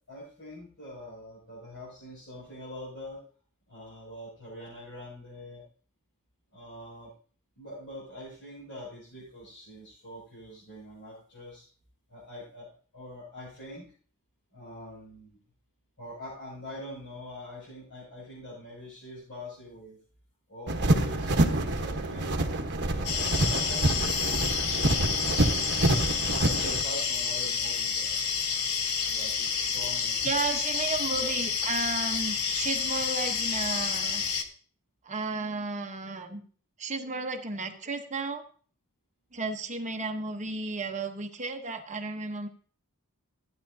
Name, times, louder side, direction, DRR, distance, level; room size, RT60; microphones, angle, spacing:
voice 1, 0.1-3.2 3.7-5.6 6.5-7.1 7.5-11.6 12.1-13.8 14.5-15.4 16.0-20.0 20.5-22.4 22.8-25.7 26.4-28.2 29.1-30.3 31.1-31.3, left 1 dB, 60° left, -8 dB, 6.7 m, -44 dB
sound 1, 20.7-26.8, right 1 dB, 55° right, 1.2 m, -27 dB
sound 2, 23.0-34.4, left 6 dB, 80° left, 1.1 m, -29 dB
voice 2, 30.2-34.2 35.0-36.4 36.8-38.4 39.3-42.5, right 3 dB, 35° right, 5 dB, 1.0 m, -33 dB
14.5 x 9.5 x 2.8 m, 0.43 s
head